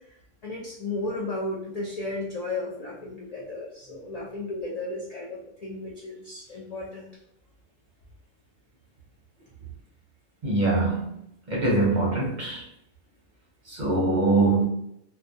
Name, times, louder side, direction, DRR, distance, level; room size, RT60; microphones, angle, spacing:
voice 1, 0.4-7.1, left 2 dB, 65° left, -4 dB, 0.4 m, -34 dB
voice 2, 10.4-11.0 11.5-12.6 13.7-14.6, right 2 dB, 50° right, -3 dB, 0.6 m, -23 dB
2.2 x 2.1 x 2.6 m, 0.74 s
omnidirectional pair, 1.2 m